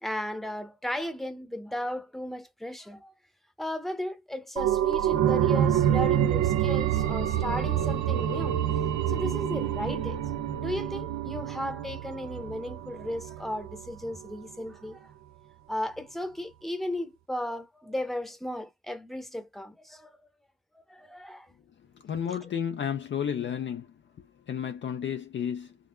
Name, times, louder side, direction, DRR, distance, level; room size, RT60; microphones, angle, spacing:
voice 1, 0.0-3.1 3.6-8.6 9.1-15.1 15.7-20.2 20.9-21.5 22.3-22.4, left 1 dB, ahead, 0.8 m, -35 dB
sound 1, 4.6-13.9 14.3-14.4, right 10 dB, 65° right, 0.6 m, -27 dB
voice 2, 22.0-23.9 24.5-25.8, left 8 dB, 40° left, 0.4 m, -32 dB
3.7 x 2.0 x 2.5 m
cardioid pair, 90°, 30 cm